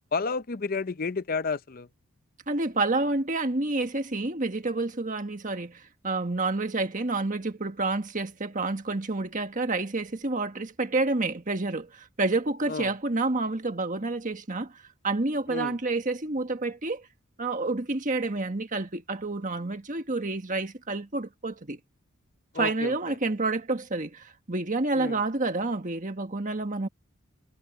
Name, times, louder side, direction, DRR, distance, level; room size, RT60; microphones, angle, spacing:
voice 1, 0.1-1.9 12.7-12.9 15.5-15.8 22.5-22.9 24.9-25.2, left 4 dB, 45° left, 0.7 m, -31 dB
voice 2, 2.5-14.8 15.0-17.1 17.4-21.8 22.5-26.9, right 3 dB, 35° right, 1.6 m, -29 dB
head